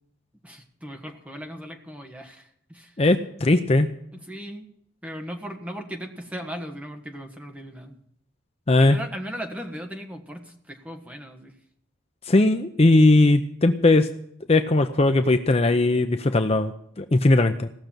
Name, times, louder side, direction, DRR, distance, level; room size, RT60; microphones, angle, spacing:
voice 1, 0.4-3.0 4.1-4.7 5.0-8.0 8.8-11.5, equal, 5° right, 3 dB, 1.5 m, -37 dB
voice 2, 3.0-3.9 8.7-9.0 12.3-14.1 14.5-17.7, left 2 dB, 30° left, 8 dB, 0.6 m, -19 dB
17.0 x 6.6 x 9.0 m, 0.72 s
head